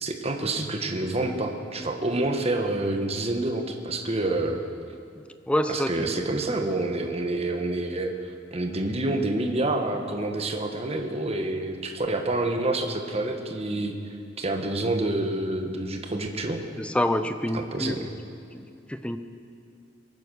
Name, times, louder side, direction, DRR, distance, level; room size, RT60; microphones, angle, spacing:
voice 1, 0.0-4.6 5.7-16.6 17.5-18.1, right 2 dB, 35° right, 4 dB, 1.3 m, -28 dB
voice 2, 5.5-6.2 16.8-18.0 18.5-18.6 18.9-19.2, left 1 dB, 5° left, 9 dB, 0.6 m, -27 dB
22.0 x 9.6 x 6.4 m, 2.4 s
head